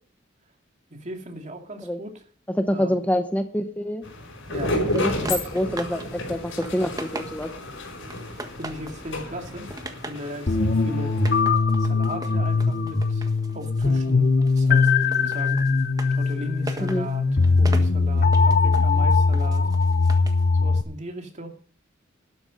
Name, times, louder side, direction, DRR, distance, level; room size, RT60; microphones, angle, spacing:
voice 1, 0.9-2.2 2.7-3.0 4.5-4.8 8.6-9.7 10.0-11.2 11.8-13.3 13.5-15.6 16.1-19.7 20.6-21.5, right 1 dB, 40° right, 4 dB, 2.5 m, -37 dB
voice 2, 2.6-4.1 4.9-7.5 16.8-17.1, equal, 10° left, 8 dB, 0.9 m, -26 dB
sound 1, 4.0-11.4, left 1 dB, 80° left, 5.6 m, -32 dB
sound 2, 4.9-6.1 6.4-7.7 8.1-9.0 9.4-10.3 11.1-14.1 14.4-20.4, right 2 dB, 20° right, 1.5 m, -40 dB
sound 3, 10.5-20.8, left 4 dB, 50° left, 1.0 m, -21 dB
12.5 x 11.5 x 5.3 m, 0.41 s
head